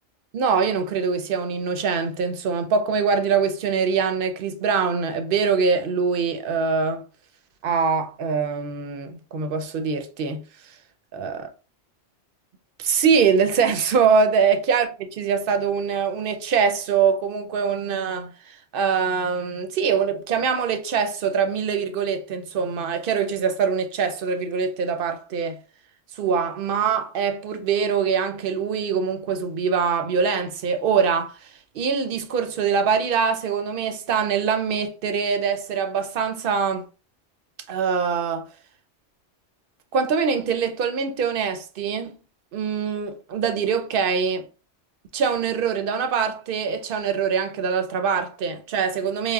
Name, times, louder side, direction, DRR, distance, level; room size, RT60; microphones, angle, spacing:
voice 1, 0.3-7.0 7.6-10.4 11.1-11.4 12.8-25.6 26.2-31.5 31.7-36.9 37.7-38.4 39.9-42.2 42.5-44.4 45.1-49.3, right 6 dB, 60° right, 0.6 m, -23 dB
4.9 x 2.0 x 2.2 m
omnidirectional pair, 1.2 m